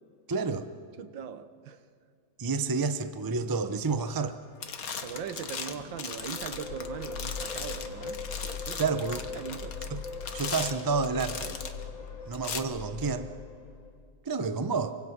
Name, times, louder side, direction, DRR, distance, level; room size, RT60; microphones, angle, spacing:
voice 1, 0.3-0.7 2.4-4.3 8.8-9.2 9.9-10.0 10.3-11.6 12.3-13.3 14.2-14.9, right 4 dB, 35° right, 10 dB, 0.3 m, -29 dB
voice 2, 1.0-1.8 5.0-8.9 9.3-9.8, right 7 dB, 75° right, 11 dB, 1.7 m, -40 dB
water bottle crunch, 4.1-4.3 4.6-11.8 12.3-12.6, left 6 dB, 50° left, 1.6 m, -38 dB
sound 1, 6.2-14.0, left 4 dB, 80° left, 2.2 m, -40 dB
26.5 x 24.5 x 6.1 m, 2.2 s
omnidirectional pair, 2.1 m